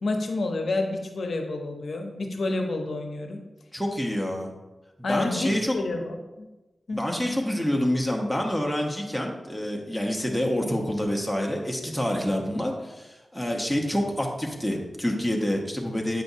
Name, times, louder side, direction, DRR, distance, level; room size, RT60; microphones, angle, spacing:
voice 1, 0.0-3.4 5.0-6.5 6.9-7.0, left 2 dB, 70° left, 3 dB, 0.7 m, -29 dB
voice 2, 3.7-4.5 5.1-5.8 6.9-16.2, equal, ahead, 0 dB, 0.9 m, -27 dB
7.9 x 5.3 x 2.7 m, 1.1 s
wide cardioid pair, 120°, 0 cm